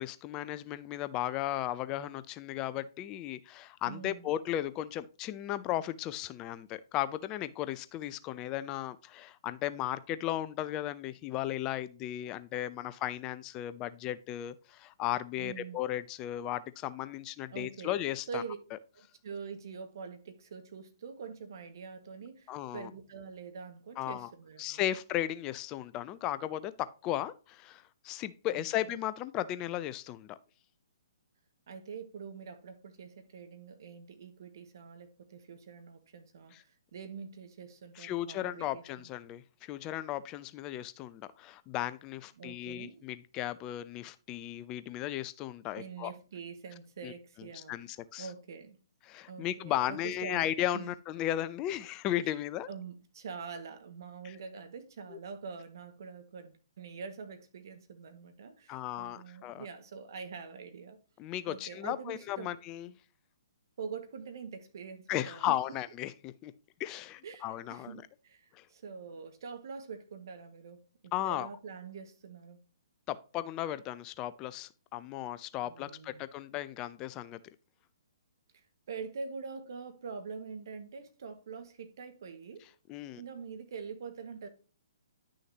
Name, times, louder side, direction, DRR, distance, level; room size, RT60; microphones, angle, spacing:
voice 1, 0.0-18.4 22.5-22.9 24.0-24.3 24.6-30.4 36.5-36.6 38.0-46.1 47.0-47.1 47.5-48.3 49.1-52.7 55.1-55.2 58.7-59.7 61.2-62.9 65.1-66.5 66.8-68.0 68.5-68.7 71.1-71.5 73.1-77.4 82.9-83.2, left 13 dB, 25° left, 0.5 m, -35 dB
voice 2, 3.8-4.3 15.4-15.8 17.5-18.0 18.3-18.6 18.9-24.8 28.5-29.0 31.7-39.1 42.4-43.1 45.8-47.9 48.2-48.8 49.3-50.5 50.7-50.9 52.2-52.3 52.7-61.0 61.5-62.6 63.8-65.6 67.2-72.6 75.6-76.3 78.9-82.7 83.1-84.5, right 5 dB, 60° right, 1.8 m, -45 dB
11.0 x 6.4 x 2.9 m
figure-of-eight pair, 130°, 2 cm